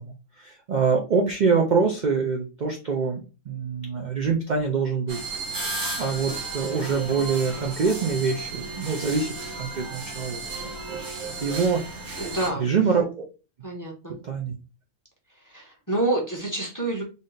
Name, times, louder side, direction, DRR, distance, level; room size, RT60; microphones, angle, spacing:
voice 1, 0.0-3.2 3.5-5.2 6.0-13.1 14.2-14.5, right 5 dB, 50° right, 1 dB, 0.6 m, -25 dB
sound 1, 5.1-12.5, right 3 dB, 80° right, 1.5 m, -34 dB
voice 2, 12.2-12.7 13.6-14.1 15.4-17.0, right 2 dB, 15° left, -2 dB, 0.8 m, -28 dB
3.4 x 2.7 x 3.8 m, 0.32 s
omnidirectional pair, 1.4 m